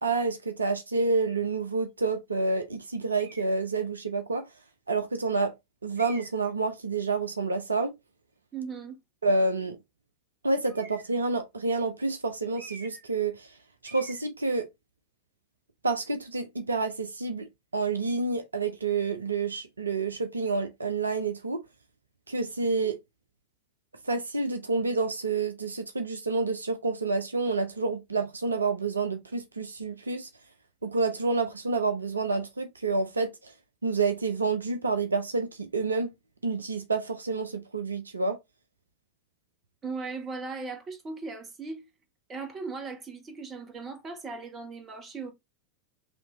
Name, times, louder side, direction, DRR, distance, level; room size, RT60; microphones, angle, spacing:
voice 1, 0.0-4.4 4.9-5.5 5.8-7.9 9.2-9.8 10.4-13.5 13.8-14.7 15.8-21.6 22.3-23.0 24.0-30.3 30.8-33.5 33.8-36.1 36.4-38.4, right 3 dB, 75° right, 0.6 m, -28 dB
sound 1, 3.2-3.6 4.4-4.5 6.0-6.5 10.6-11.2 12.5-13.1 13.4-13.6 13.8-14.3, right 3 dB, 45° right, 1.5 m, -47 dB
voice 2, 8.5-9.0 39.8-41.8 42.3-45.3, right 4 dB, 25° right, 1.2 m, -38 dB
5.3 x 2.8 x 2.8 m
figure-of-eight pair, 90°, 0 cm